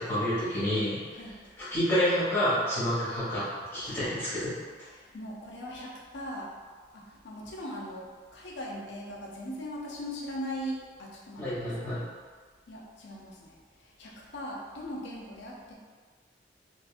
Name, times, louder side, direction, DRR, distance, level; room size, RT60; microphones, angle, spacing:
voice 1, 0.0-1.0 1.6-4.5 11.4-12.0, equal, 15° left, -12 dB, 1.4 m, -28 dB
voice 2, 4.9-6.5 6.9-12.0 12.7-15.7, equal, 65° left, -3 dB, 0.5 m, -40 dB
2.7 x 2.5 x 2.4 m, 1.5 s
head